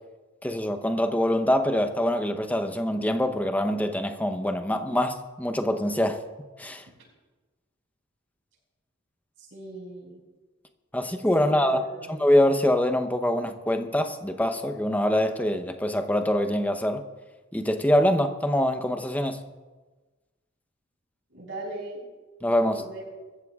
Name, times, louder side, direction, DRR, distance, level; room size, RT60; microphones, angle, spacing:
voice 1, 0.4-6.2 6.6-6.8 10.9-17.0 17.5-19.4 22.4-22.8, left 1 dB, 10° left, 7 dB, 0.8 m, -24 dB
voice 2, 9.4-10.2 11.4-12.1 21.3-22.1 22.6-23.1, right 2 dB, 70° right, -1 dB, 5.3 m, -39 dB
23.5 x 14.5 x 2.4 m, 1.3 s
head